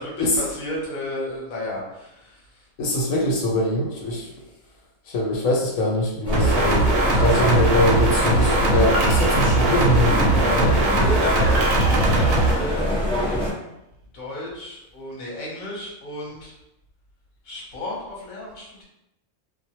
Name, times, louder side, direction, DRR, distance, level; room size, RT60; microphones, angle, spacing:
voice 1, 0.0-2.4 10.9-12.8 14.1-16.5 17.4-18.8, left 1 dB, 45° left, -5 dB, 0.8 m, -32 dB
voice 2, 2.8-4.3 5.1-6.9 7.2-10.8, left 1 dB, 80° left, -1 dB, 1.0 m, -23 dB
sound 1, 6.2-13.5, equal, 5° left, 0.5 m, -24 dB
sound 2, 6.3-12.5, right 2 dB, 60° right, 0.7 m, -20 dB
sound 3, 7.4-8.0 8.9-10.6 11.5-13.3, right 1 dB, 85° right, 1.0 m, -33 dB
2.1 x 2.1 x 2.8 m, 0.87 s
omnidirectional pair, 1.4 m